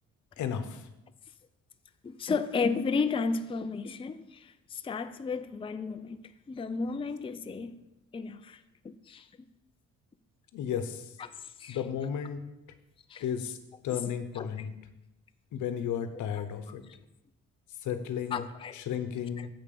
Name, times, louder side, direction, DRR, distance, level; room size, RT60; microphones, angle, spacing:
voice 1, 0.4-0.9 10.5-11.1 11.7-12.4 13.2-13.6 13.8-14.7 15.5-16.8 17.8-18.4 18.7-19.5, left 8 dB, 75° left, 10 dB, 0.9 m, -33 dB
voice 2, 2.0-6.2 6.5-7.8 8.1-9.3 11.2-11.8 13.1-13.2 13.9-14.0 14.3-14.7 16.9-17.0 18.3-18.8 19.4-19.5, left 4 dB, 20° left, 10 dB, 0.4 m, -33 dB
7.9 x 5.4 x 6.8 m, 0.94 s
cardioid pair, 90°, 30 cm